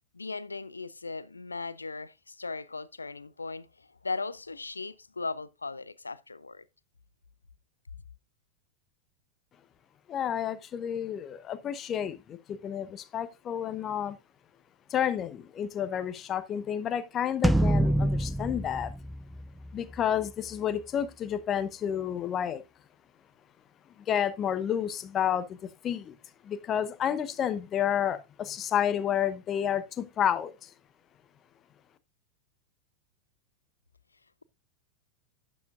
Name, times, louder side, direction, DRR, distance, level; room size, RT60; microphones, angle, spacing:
voice 1, 0.1-6.6, left 3 dB, 80° left, 0.5 m, -38 dB
voice 2, 10.1-14.2 14.9-18.9 19.7-22.6 24.1-26.1 26.4-30.7, left 9 dB, 30° left, 0.9 m, -30 dB
sound 1, 17.4-20.0, right 1 dB, 5° right, 0.4 m, -26 dB
11.5 x 8.6 x 2.5 m
figure-of-eight pair, 90°, 0 cm